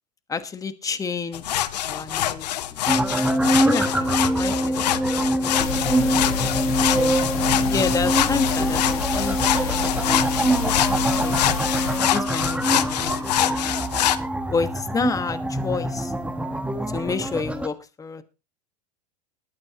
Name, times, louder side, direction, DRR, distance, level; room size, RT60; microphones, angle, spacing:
voice 1, 0.3-2.8 3.6-6.5 6.9-7.2 7.7-10.7 11.0-11.4 12.1-13.8 14.5-16.1 16.9-18.2, left 5 dB, 15° left, 11 dB, 1.3 m, -30 dB
sound 1, 1.3-14.2, left 13 dB, 85° left, 0.9 m, -25 dB
sound 2, 2.9-17.7, right 1 dB, 5° right, 1.3 m, -24 dB
sound 3, 5.6-12.0, left 8 dB, 70° left, 2.3 m, -30 dB
20.5 x 8.6 x 2.9 m, 0.30 s
hypercardioid pair, 110°, 20 cm